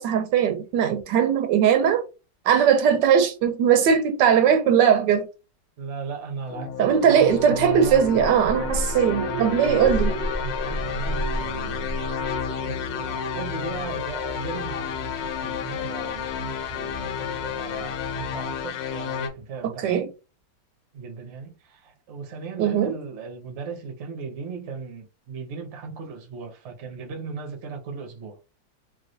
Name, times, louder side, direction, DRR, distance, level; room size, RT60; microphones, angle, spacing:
voice 1, 0.0-2.0 2.5-5.3 6.8-10.1 19.8-20.1 22.6-22.9, right 8 dB, 80° right, 1.2 m, -19 dB
voice 2, 5.8-8.2 8.5-8.8 9.1-9.8 10.1-11.9 12.6-20.0 20.9-28.4, right 5 dB, 50° right, 0.9 m, -37 dB
sound 1, 6.5-19.3, left 8 dB, 85° left, 1.3 m, -31 dB
Alarm, 7.3-19.3, right 1 dB, 25° left, 0.8 m, -34 dB
3.1 x 2.7 x 2.6 m
omnidirectional pair, 1.9 m